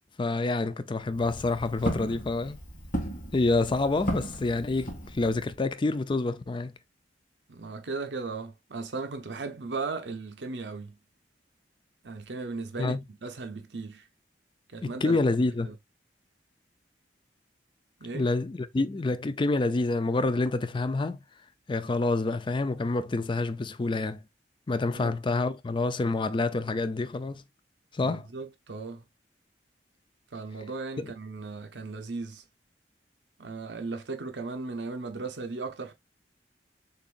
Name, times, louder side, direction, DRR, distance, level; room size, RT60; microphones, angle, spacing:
voice 1, 0.2-2.6 3.3-6.7 12.8-13.0 14.8-15.7 18.1-21.2 21.7-24.2 24.7-27.4 27.9-28.3 31.0-31.1, left 3 dB, 30° left, 0.4 m, -27 dB
Walk footsteps, 1.0-5.6, right 1 dB, 50° left, 1.9 m, -36 dB
voice 2, 7.5-11.0 12.0-14.1 14.7-15.2 15.6-15.7 18.0-18.2 24.9-25.2 28.0-29.0 30.3-32.4 33.4-35.9, right 3 dB, 80° right, 0.8 m, -37 dB
6.5 x 2.6 x 2.4 m
head